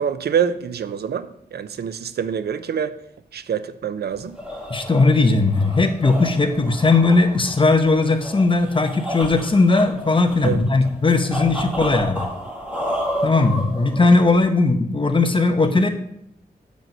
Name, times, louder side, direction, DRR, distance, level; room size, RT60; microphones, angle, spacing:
voice 1, 0.0-2.9 3.3-4.4 10.4-10.6, right 7 dB, 85° right, 13 dB, 0.5 m, -25 dB
sound 1, 4.1-14.5, equal, 5° right, 1.8 m, -31 dB
voice 2, 4.7-12.3 13.2-15.9, left 3 dB, 30° left, 7 dB, 0.9 m, -18 dB
7.5 x 5.2 x 5.3 m, 0.73 s
wide cardioid pair, 110°, 16 cm